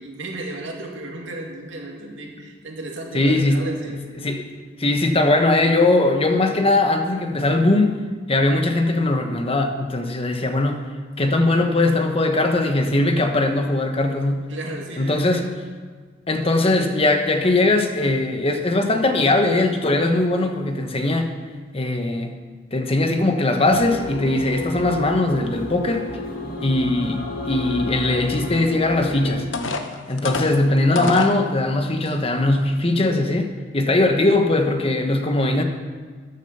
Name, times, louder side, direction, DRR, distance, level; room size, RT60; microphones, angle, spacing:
voice 1, 0.0-4.0 14.5-15.4, right 2 dB, 70° right, 0 dB, 2.4 m, -34 dB
voice 2, 3.1-3.8 4.2-8.0 8.3-10.9 11.2-14.5 15.0-15.6 16.3-21.3 21.7-22.3 22.7-26.1 26.6-29.5 30.1-35.6, left 2 dB, 30° left, 5 dB, 1.2 m, -20 dB
sound 1, 23.7-29.4, left 2 dB, 50° left, 2.0 m, -32 dB
sound 2, 29.0-29.1 29.5-31.4 32.1-32.2 32.7-32.9, left 3 dB, 75° left, 1.0 m, -28 dB
13.5 x 10.0 x 5.6 m, 1.5 s
head